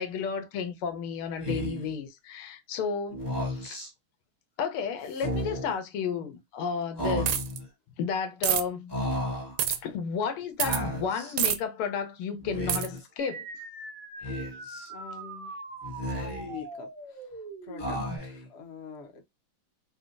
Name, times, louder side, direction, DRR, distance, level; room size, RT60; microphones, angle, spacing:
voice 1, 0.0-3.2 3.5-3.8 4.6-7.4 8.0-8.9 9.7-13.5, left 6 dB, 80° left, 1.6 m, -32 dB
Speech, 1.4-1.9 3.1-3.9 5.1-5.8 7.0-7.7 8.9-9.6 10.6-11.4 12.4-13.1 14.2-14.9 15.8-16.6 17.8-18.5, equal, 15° left, 0.8 m, -33 dB
sound 1, 7.3-7.6 8.4-8.6 9.6-9.8 10.6-10.8 11.4-11.6 12.7-12.9, right 10 dB, 75° right, 1.0 m, -26 dB
sound 2, 13.2-18.2, right 3 dB, 35° right, 0.8 m, -42 dB
voice 2, 14.9-15.5 16.1-17.3 17.6-19.2, left 6 dB, 65° left, 0.6 m, -44 dB
4.1 x 2.2 x 2.5 m
omnidirectional pair, 2.4 m